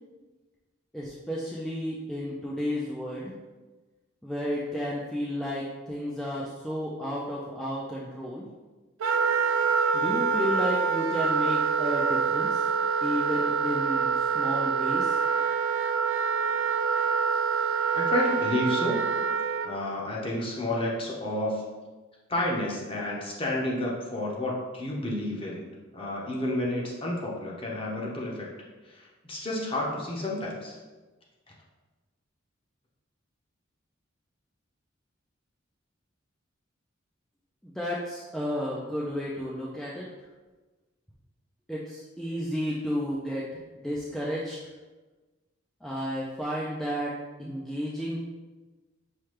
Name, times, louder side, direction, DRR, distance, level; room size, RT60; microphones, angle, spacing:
voice 1, 0.9-3.3 4.2-8.5 9.9-12.7 13.0-15.2 37.6-40.1 41.7-43.5 43.7-44.6 45.8-47.1 47.4-48.2, equal, ahead, -6 dB, 0.3 m, -32 dB
Wind instrument woodwind instrument, 9.0-19.7, right 5 dB, 85° right, 0.3 m, -26 dB
voice 2, 17.9-19.0 19.6-21.6 22.3-25.6 25.9-28.5 28.9-30.8, left 1 dB, 30° left, -3 dB, 0.8 m, -30 dB
5.7 x 2.2 x 3.2 m, 1.2 s
head